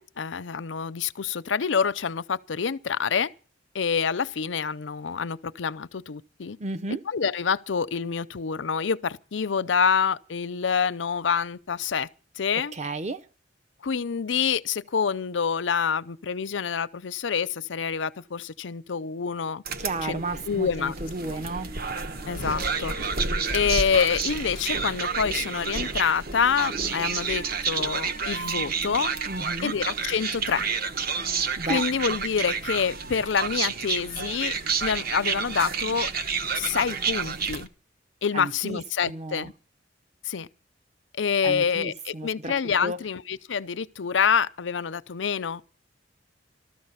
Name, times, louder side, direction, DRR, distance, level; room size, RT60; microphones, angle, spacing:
voice 1, 0.0-3.3 3.7-6.6 7.1-12.1 12.4-12.7 13.8-19.6 20.0-20.9 21.2-21.4 22.3-23.0 23.5-29.1 29.6-30.6 31.7-34.5 34.8-36.1 36.5-37.7 38.2-39.5 40.2-40.5 41.2-45.7, left 6 dB, 90° left, 0.6 m, -27 dB
voice 2, 6.6-7.0 12.6-13.3 19.8-21.7 29.3-29.7 31.6-31.8 38.3-38.8 39.1-39.5 41.4-42.5 42.8-43.0, right 2 dB, 40° right, 0.8 m, -33 dB
sound 1, 19.7-37.7, right 5 dB, 55° right, 1.1 m, -30 dB
14.0 x 14.0 x 5.7 m
head